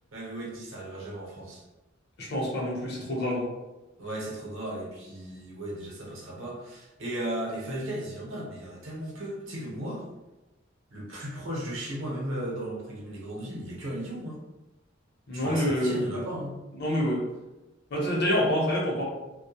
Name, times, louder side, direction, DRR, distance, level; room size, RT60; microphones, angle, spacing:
voice 1, 0.1-1.6 4.0-10.0 10.9-14.4 15.3-16.6, right 1 dB, 80° right, -3 dB, 0.7 m, -36 dB
voice 2, 2.2-3.5 15.3-16.2 16.8-17.2 17.9-19.0, equal, 55° left, -3 dB, 0.7 m, -27 dB
2.2 x 2.1 x 2.8 m, 1.0 s
head